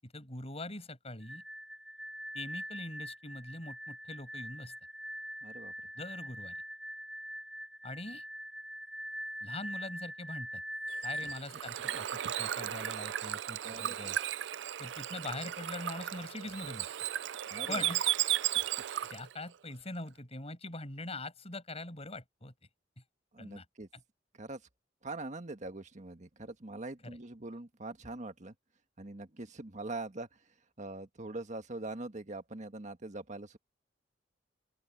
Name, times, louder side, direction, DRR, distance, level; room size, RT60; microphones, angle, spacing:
voice 1, 0.0-1.4 2.3-4.7 6.0-6.6 7.8-8.2 9.4-10.6 11.0-14.2 14.8-16.9 17.7-18.0 19.0-22.5 23.4-23.7 27.0-27.2, left 2 dB, 35° left, 7.4 m, -43 dB
sound 1, 1.2-11.4, equal, 5° right, 2.2 m, -43 dB
voice 2, 5.4-5.7 11.5-11.6 13.6-14.1 17.5-17.9 23.3-23.9 24.3-24.6 25.0-28.5 29.0-33.6, right 2 dB, 40° right, 1.6 m, -43 dB
Bird / Water, 10.9-19.3, right 12 dB, 70° right, 0.4 m, -35 dB
open air
head